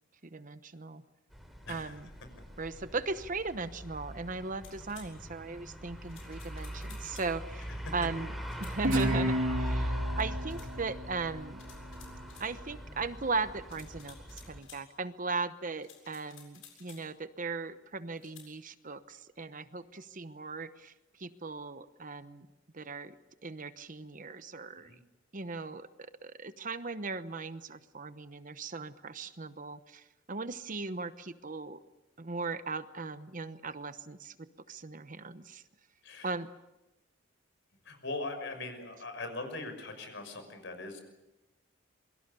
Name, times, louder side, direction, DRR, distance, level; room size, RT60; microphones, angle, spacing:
voice 1, 0.3-1.0 1.7-2.1 2.6-8.3 8.6-11.6 12.4-20.9 21.2-22.5 22.7-23.1 23.4-24.9 25.3-31.8 32.2-34.4 34.7-35.6 36.2-36.5, right 4 dB, 40° right, 12 dB, 0.9 m, -38 dB
sound 1, 1.3-14.6, equal, ahead, 3.3 m, -40 dB
sound 2, 4.6-5.1 6.1-7.3 8.4-8.8 10.5-10.7 11.6-12.5 13.7-14.8 15.8-17.1 18.2-18.5, left 8 dB, 80° left, 7.6 m, -55 dB
Guitar, 8.8-12.1, right 1 dB, 70° right, 3.3 m, -32 dB
voice 2, 37.8-41.0, left 2 dB, 65° left, 7 dB, 5.9 m, -40 dB
27.5 x 23.5 x 6.9 m, 0.99 s
head